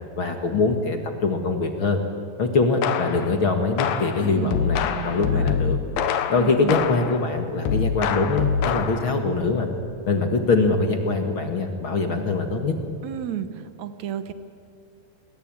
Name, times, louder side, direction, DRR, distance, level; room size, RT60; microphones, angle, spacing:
voice 1, 0.2-2.0 2.4-5.8 6.3-9.7 10.1-12.7, left 3 dB, 45° left, 5 dB, 1.8 m, -23 dB
sound 1, 2.8-3.3 3.8-7.2 7.6-9.2, left 6 dB, 70° left, 2.9 m, -25 dB
voice 2, 4.2-4.6 4.9-5.5 6.3-6.8 13.0-14.3, right 10 dB, 70° right, 11 dB, 1.8 m, -32 dB
28.0 x 22.0 x 8.9 m, 2.5 s
omnidirectional pair, 4.7 m